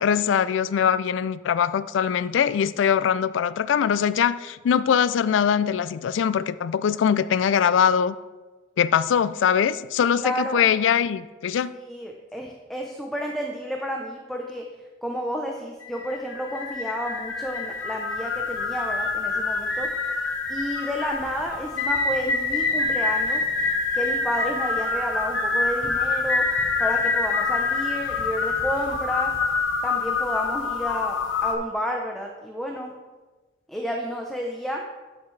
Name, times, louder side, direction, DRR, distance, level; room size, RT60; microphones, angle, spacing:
voice 1, 0.0-8.2 8.8-11.7, left 8 dB, 70° left, 16 dB, 0.3 m, -22 dB
voice 2, 10.2-10.7 11.8-14.6 15.0-19.9 20.5-23.4 23.9-26.4 26.8-29.3 29.8-31.1 31.4-32.9 33.7-34.8, equal, ahead, 0 dB, 0.6 m, -31 dB
sound 1, 15.8-31.5, left 4 dB, 90° left, 1.1 m, -26 dB
12.0 x 5.8 x 3.2 m, 1.2 s
head